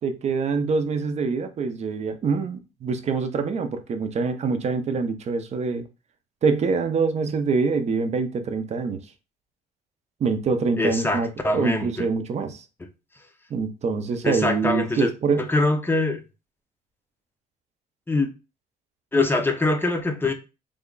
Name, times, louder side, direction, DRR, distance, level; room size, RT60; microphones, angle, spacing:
voice 1, 0.0-5.9 6.4-9.0 10.2-11.3 11.5-12.6 13.5-15.5, right 4 dB, 40° right, 0.6 m, -25 dB
voice 2, 10.8-12.1 14.2-15.1 15.4-16.2 18.1-18.3 19.1-20.3, left 2 dB, 15° left, 0.6 m, -23 dB
3.5 x 2.2 x 3.8 m
cardioid pair, 110°, 17 cm